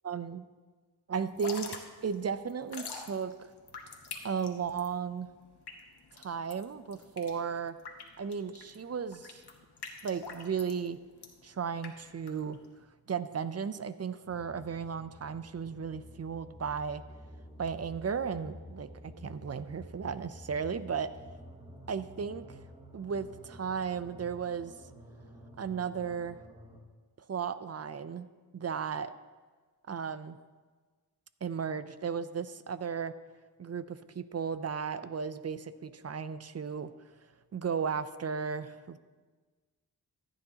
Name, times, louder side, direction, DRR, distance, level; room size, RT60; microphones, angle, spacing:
voice 1, 0.0-0.5 1.1-3.5 4.2-5.3 6.1-7.8 8.2-9.4 10.0-11.0 11.4-12.6 13.1-17.0 17.6-21.1 21.9-22.6 22.9-24.7 25.6-26.4 27.3-28.3 28.5-29.1 29.9-30.4 31.4-33.1 33.6-36.9 37.5-39.0, right 6 dB, 40° right, 13 dB, 0.5 m, -35 dB
Drip / Trickle dribble, 1.2-12.8, left 5 dB, 80° left, 1.2 m, -46 dB
sound 1, 14.2-26.8, equal, 15° right, 1.3 m, -51 dB
14.5 x 9.2 x 2.9 m, 1.4 s
wide cardioid pair, 70°, 39 cm